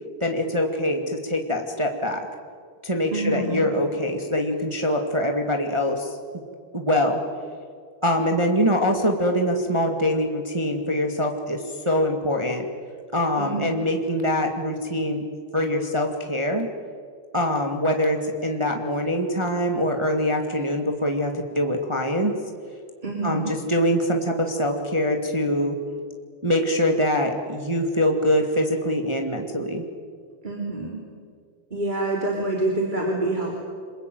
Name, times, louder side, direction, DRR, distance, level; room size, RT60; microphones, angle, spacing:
voice 1, 0.2-2.2 2.8-6.1 6.7-7.2 8.0-12.6 13.1-15.2 15.5-16.7 17.3-22.3 23.2-25.7 26.4-29.8, left 1 dB, 30° right, 3 dB, 0.5 m, -24 dB
voice 2, 3.1-3.7 13.4-13.8 23.0-23.5 30.4-31.0 31.7-33.6, right 2 dB, 15° right, -1 dB, 2.9 m, -26 dB
27.0 x 22.0 x 9.2 m, 2.1 s
omnidirectional pair, 4.4 m